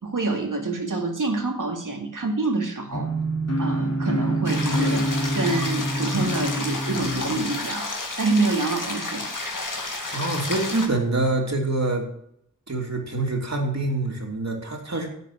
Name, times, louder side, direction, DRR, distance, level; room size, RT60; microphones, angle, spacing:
voice 1, 0.0-3.1 3.6-7.9 8.2-9.3, right 3 dB, 80° right, 2 dB, 2.4 m, -27 dB
sound 1, 2.9-7.5, right 1 dB, 55° left, 3.5 m, -26 dB
sound 2, 4.4-10.9, left 2 dB, 85° left, 2.5 m, -31 dB
voice 2, 10.1-12.1 12.7-15.1, right 2 dB, 60° right, 0 dB, 3.2 m, -25 dB
11.0 x 8.5 x 6.1 m, 0.69 s
wide cardioid pair, 70°, 31 cm